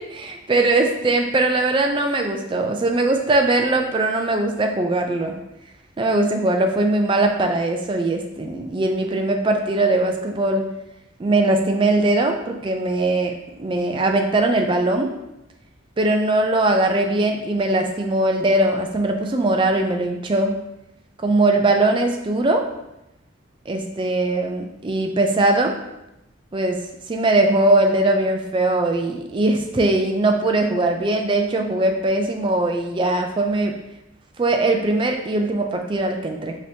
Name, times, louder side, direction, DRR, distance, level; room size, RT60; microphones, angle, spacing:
voice 1, 0.0-5.3 6.0-10.6 11.2-13.3 13.6-15.1 16.0-20.5 21.2-22.6 23.7-25.7 26.5-26.8 27.1-33.7 34.4-36.6, right 2 dB, 25° right, 4 dB, 0.3 m, -20 dB
5.0 x 2.9 x 2.7 m, 0.89 s
head